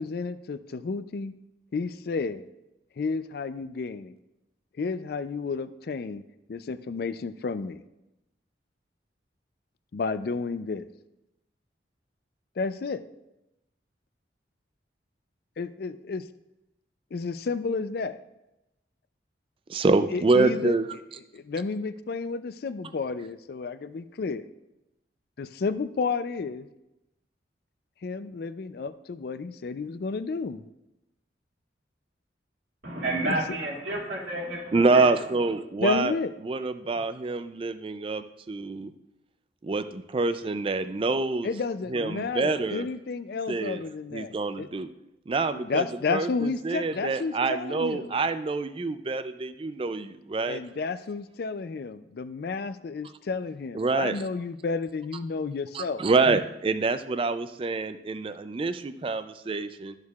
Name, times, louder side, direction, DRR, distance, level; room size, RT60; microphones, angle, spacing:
voice 1, 0.0-1.3 1.7-2.5 3.0-4.1 4.8-6.2 6.5-7.8 9.9-10.9 12.6-13.0 15.6-16.2 17.1-18.2 20.1-20.7 21.3-24.4 25.4-26.7 28.0-30.7 33.2-33.4 35.8-36.3 37.0-37.1 41.4-44.7 45.5-48.2 50.5-56.0, left 4 dB, 55° left, 12 dB, 0.4 m, -31 dB
voice 2, 19.7-20.9 34.7-36.1 36.4-38.9 39.6-41.5 41.9-42.9 43.5-43.8 44.1-44.9 45.3-50.6 53.7-54.2 55.7-59.9, right 3 dB, 30° right, 11 dB, 0.3 m, -26 dB
voice 3, 32.8-35.1, right 1 dB, 80° right, -3 dB, 2.3 m, -30 dB
12.5 x 6.5 x 2.4 m, 0.92 s
head